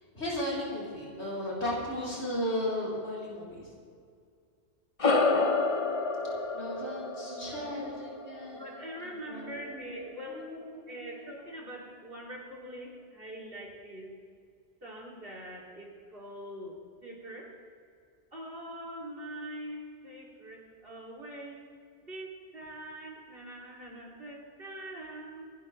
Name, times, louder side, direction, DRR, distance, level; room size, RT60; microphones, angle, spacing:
voice 1, 0.1-3.7 6.5-9.9 10.3-11.1, left 1 dB, 70° left, -6 dB, 4.5 m, -36 dB
sound 1, 5.0-9.8, left 3 dB, 30° left, 0.9 m, -30 dB
voice 2, 7.2-7.8 8.5-10.5 10.9-14.1 14.8-17.5 18.3-21.6 22.0-25.5, right 1 dB, 55° right, -3 dB, 3.2 m, -43 dB
25.0 x 12.5 x 3.3 m, 2.2 s
omnidirectional pair, 1.2 m